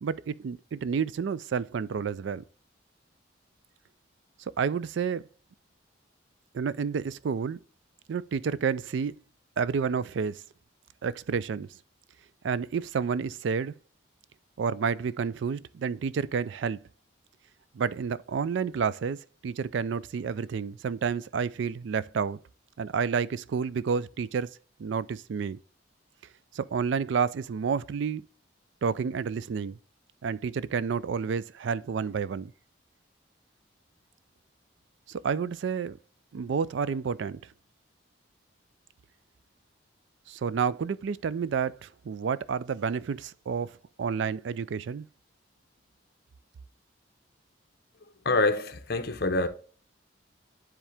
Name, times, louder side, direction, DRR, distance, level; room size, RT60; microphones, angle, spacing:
voice 1, 0.0-2.4 4.6-5.2 6.5-7.6 8.1-9.1 9.6-10.4 11.0-11.7 12.4-13.7 14.6-16.8 17.8-19.2 19.4-22.4 22.8-24.5 24.8-25.6 26.5-28.2 28.8-29.8 30.2-32.5 35.1-36.0 36.3-37.4 40.3-43.7 44.0-45.1, right 6 dB, 70° right, 0.3 m, -30 dB
voice 2, 48.2-49.5, left 2 dB, 50° left, 0.8 m, -26 dB
10.0 x 3.7 x 3.4 m
head